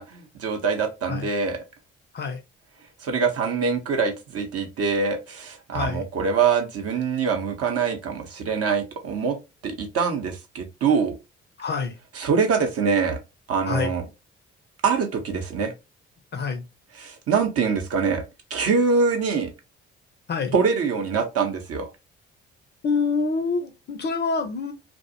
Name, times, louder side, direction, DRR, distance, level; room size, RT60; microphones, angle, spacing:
voice 1, 0.0-1.6 3.0-9.4 9.6-11.2 12.1-13.2 13.5-14.0 14.8-15.7 16.9-18.2 18.5-19.5 20.5-21.9, right 5 dB, 45° right, 0.7 m, -24 dB
voice 2, 5.7-6.0 11.6-11.9 13.6-13.9 16.3-16.6 20.3-20.5 22.8-24.7, left 4 dB, 30° left, 0.5 m, -26 dB
2.5 x 2.0 x 2.7 m
figure-of-eight pair, 40°, 34 cm